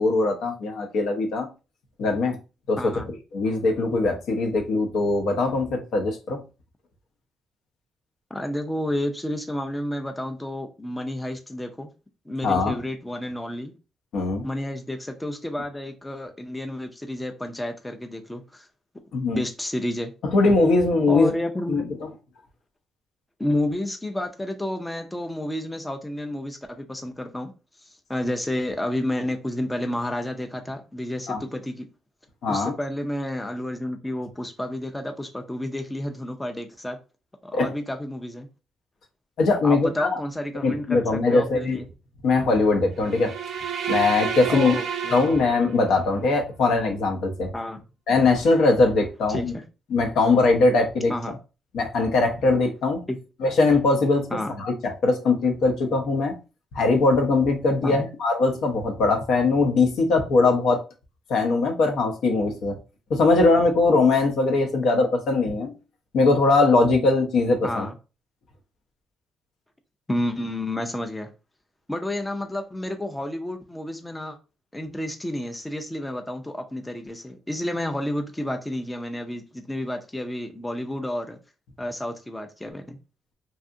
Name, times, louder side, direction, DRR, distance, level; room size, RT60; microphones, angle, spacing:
voice 1, 0.0-1.5 2.0-2.4 2.7-2.8 3.3-6.4 12.4-12.8 14.1-14.5 19.1-19.4 20.2-21.3 21.7-21.8 31.3-31.4 32.4-32.7 37.5-37.7 39.4-40.2 40.6-41.8 42.2-43.3 43.9-44.8 45.1-47.5 48.1-49.5 49.9-51.1 51.7-53.0 53.4-54.3 54.6-56.3 56.7-60.8 61.3-62.7 63.1-65.7 66.1-67.9, left 3 dB, 75° left, 3 dB, 0.7 m, -21 dB
voice 2, 2.8-3.1 8.3-11.9 12.3-13.7 14.4-18.7 19.2-20.1 21.1-21.9 23.4-27.5 28.1-31.8 32.5-37.0 37.4-38.5 39.6-41.8 44.5-45.3 47.5-47.8 49.3-49.6 51.1-51.4 53.1-53.2 54.3-54.5 57.8-58.0 67.6-67.9 70.1-71.3 71.9-74.4 74.7-81.4 81.8-83.0, left 1 dB, 10° left, 5 dB, 0.4 m, -30 dB
sound 1, 43.0-46.1, right 7 dB, 70° right, 0.5 m, -30 dB
2.7 x 2.4 x 2.5 m, 0.31 s
cardioid pair, 90°, 0 cm